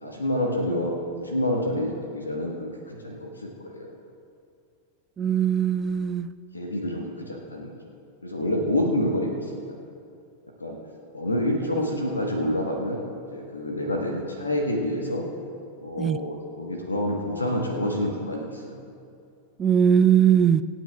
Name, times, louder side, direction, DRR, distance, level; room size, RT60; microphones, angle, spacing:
voice 1, 0.0-3.9 6.5-7.8 8.2-9.8 10.6-10.8 11.1-15.3 15.8-18.8, left 1 dB, 80° left, 1 dB, 1.2 m, -28 dB
voice 2, 5.2-6.3 16.0-16.2 19.6-20.6, right 8 dB, 25° right, 11 dB, 0.4 m, -20 dB
26.0 x 9.0 x 2.3 m, 2.4 s
figure-of-eight pair, 90°, 0 cm